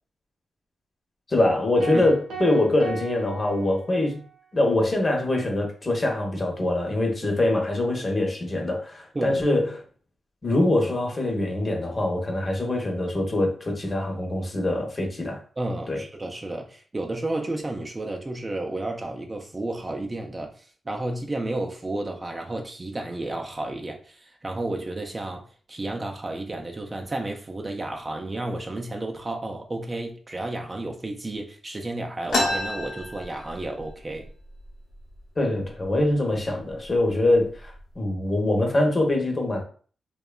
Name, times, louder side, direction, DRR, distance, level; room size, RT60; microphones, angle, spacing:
voice 1, 1.3-4.2 4.5-9.8 10.4-15.4 15.9-16.0 35.4-39.6, left 1 dB, 35° left, 0.8 m, -24 dB
sound 1, 1.8-4.3, right 6 dB, 85° right, 0.5 m, -38 dB
voice 2, 15.6-34.3, right 2 dB, 30° right, 0.4 m, -32 dB
sound 2, 32.3-33.9 34.3-34.4 34.6-35.2 35.8-36.0 36.7-36.9 37.3-37.8, left 2 dB, 75° left, 0.8 m, -28 dB
2.8 x 2.2 x 2.2 m
cardioid pair, 70°, 0 cm